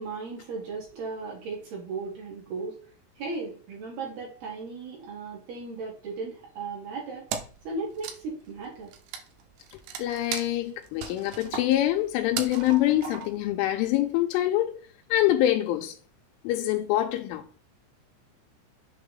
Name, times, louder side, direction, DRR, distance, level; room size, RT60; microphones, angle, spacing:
voice 1, 0.0-2.7 3.2-7.3 7.6-8.9, right 3 dB, 60° right, 3.0 m, -36 dB
Wood, 7.3-7.7 7.9-13.5, right 8 dB, 90° right, 2.4 m, -37 dB
voice 2, 9.7-14.8 15.1-15.9 16.4-17.4, left 14 dB, 85° left, 3.0 m, -25 dB
8.0 x 3.4 x 3.8 m
omnidirectional pair, 5.8 m